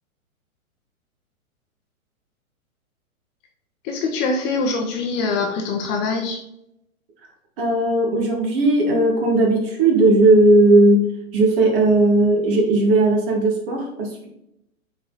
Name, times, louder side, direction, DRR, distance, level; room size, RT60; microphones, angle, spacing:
voice 1, 3.8-6.4, left 3 dB, 25° left, 1 dB, 0.8 m, -23 dB
voice 2, 7.6-11.1 11.3-14.3, right 2 dB, 40° right, 0 dB, 2.1 m, -16 dB
6.3 x 4.6 x 4.0 m, 0.81 s
figure-of-eight pair, 115°, 43 cm